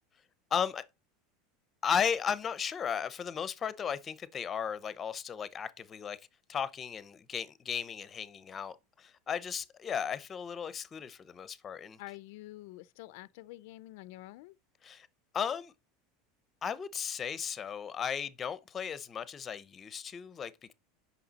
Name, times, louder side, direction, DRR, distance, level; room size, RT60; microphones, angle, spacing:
voice 1, 0.5-0.8 1.8-6.2 6.5-12.0 14.8-15.1 15.3-15.7 16.6-20.7, left 7 dB, 20° left, 0.6 m, -35 dB
voice 2, 12.0-14.5, left 18 dB, 60° left, 0.4 m, -47 dB
8.6 x 5.6 x 4.0 m
supercardioid pair, 170°, 0 cm